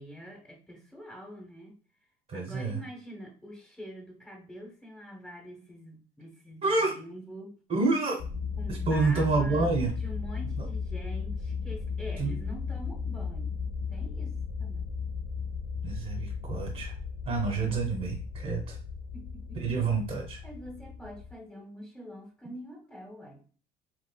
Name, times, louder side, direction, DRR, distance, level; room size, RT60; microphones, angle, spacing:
voice 1, 0.0-1.8 2.3-7.5 8.6-13.6 13.9-14.8 19.1-19.6 20.4-23.4, equal, 5° left, -1 dB, 1.1 m, -45 dB
voice 2, 2.3-2.8 6.6-7.0 7.7-8.2 8.7-9.9 10.6-10.7 12.2-12.3 15.8-17.0 17.3-18.8 19.5-20.4, right 4 dB, 40° right, -1 dB, 1.3 m, -28 dB
sound 1, 8.2-21.4, left 5 dB, 55° left, 0.8 m, -35 dB
4.7 x 2.3 x 2.3 m, 0.40 s
supercardioid pair, 85°, 20 cm